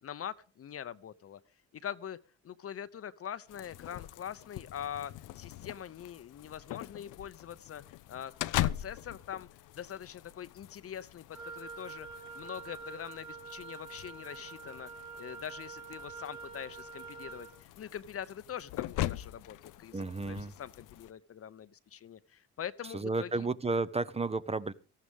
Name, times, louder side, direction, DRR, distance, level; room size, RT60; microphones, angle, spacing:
voice 1, 0.0-1.4 1.7-2.2 2.4-12.1 12.3-14.9 15.2-23.5, left 9 dB, 50° left, 0.8 m, -43 dB
sound 1, 3.5-21.1, left 14 dB, 85° left, 0.6 m, -41 dB
Wind instrument woodwind instrument, 11.3-17.6, right 4 dB, 60° right, 3.3 m, -46 dB
voice 2, 19.9-20.5 22.9-24.7, right 3 dB, 20° right, 0.8 m, -32 dB
18.0 x 14.0 x 3.6 m
cardioid pair, 90°, 30 cm